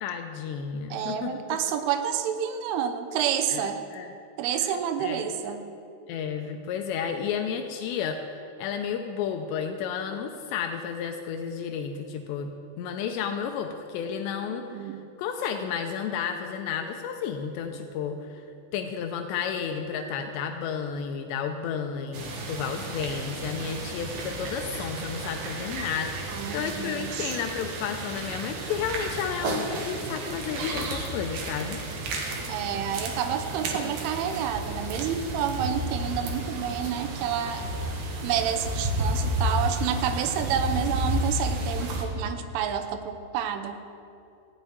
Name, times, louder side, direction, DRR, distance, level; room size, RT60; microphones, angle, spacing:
voice 1, 0.0-1.6 3.5-4.1 4.5-4.7 5.0-5.3 6.1-14.9 15.2-18.4 18.7-31.8, left 7 dB, 80° left, 5 dB, 2.6 m, -32 dB
voice 2, 0.9-3.8 4.4-5.6 14.5-15.1 26.3-27.4 32.5-37.7 38.2-43.8, right 8 dB, 90° right, 8 dB, 3.3 m, -29 dB
sound 1, 22.1-42.0, right 1 dB, 60° right, 2.6 m, -32 dB
15.0 x 6.2 x 9.2 m, 2.7 s
omnidirectional pair, 5.4 m